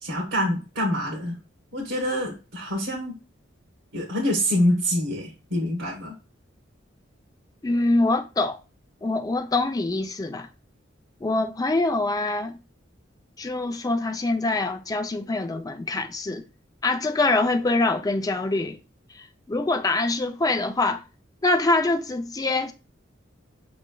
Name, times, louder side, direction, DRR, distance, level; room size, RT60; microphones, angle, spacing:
voice 1, 0.0-1.3 1.7-3.1 3.9-6.1, equal, 85° right, 1.2 m, -26 dB
voice 2, 7.6-8.6 9.0-10.5 11.2-12.5 13.4-16.4 16.8-18.8 19.1-21.0 21.4-22.7, left 2 dB, 20° left, 0.4 m, -24 dB
5.5 x 3.1 x 2.2 m
head